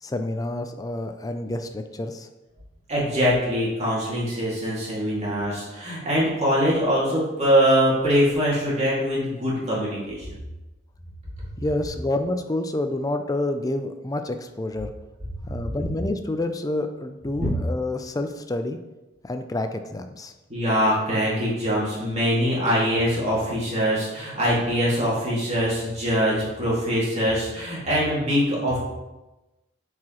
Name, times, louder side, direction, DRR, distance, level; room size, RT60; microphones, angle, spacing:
voice 1, 0.0-2.3 11.6-14.9 15.5-18.8 19.2-20.3, left 2 dB, 20° left, 8 dB, 0.4 m, -28 dB
voice 2, 2.9-10.3 17.4-17.5 20.5-28.8, equal, 35° right, -6 dB, 2.3 m, -23 dB
9.2 x 4.8 x 3.0 m, 1.0 s
head